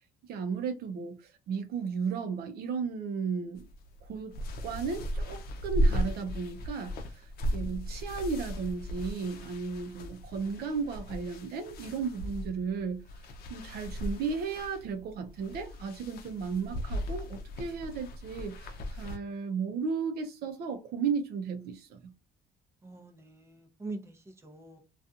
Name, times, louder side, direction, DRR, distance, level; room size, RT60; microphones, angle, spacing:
voice 1, 0.3-1.2 1.5-3.6 4.0-4.4 4.6-7.2 7.5-13.0 13.5-22.1, right 5 dB, 70° right, 0.6 m, -34 dB
sound 1, 3.6-19.2, equal, 65° left, 0.6 m, -36 dB
voice 2, 22.8-24.8, right 3 dB, 15° right, 0.7 m, -43 dB
2.7 x 2.4 x 2.4 m
cardioid pair, 110°, 17 cm